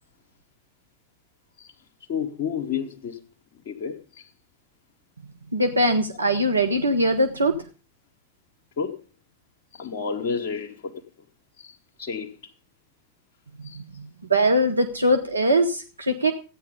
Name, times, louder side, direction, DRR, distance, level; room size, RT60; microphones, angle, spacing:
voice 1, 2.1-3.2 3.7-4.2 8.8-8.9 9.7-10.9 11.6-12.3 13.6-13.8, left 6 dB, 50° left, 1.4 m, -30 dB
voice 2, 5.5-7.6 14.3-16.3, right 1 dB, 80° right, 1.0 m, -21 dB
14.5 x 9.7 x 5.2 m
figure-of-eight pair, 90°, 0 cm